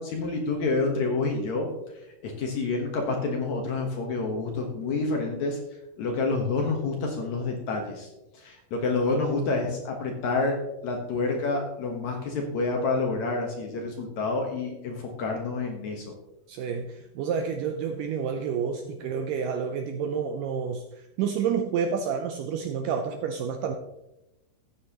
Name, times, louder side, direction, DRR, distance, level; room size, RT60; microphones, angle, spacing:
voice 1, 0.0-1.7 2.2-5.6 6.0-8.1 8.3-10.6 10.8-16.1, left 3 dB, 65° left, 2 dB, 2.0 m, -28 dB
voice 2, 16.5-16.9 17.2-20.8 21.2-23.8, right 6 dB, 90° right, 6 dB, 1.9 m, -29 dB
13.5 x 9.5 x 3.0 m, 0.93 s
omnidirectional pair, 4.5 m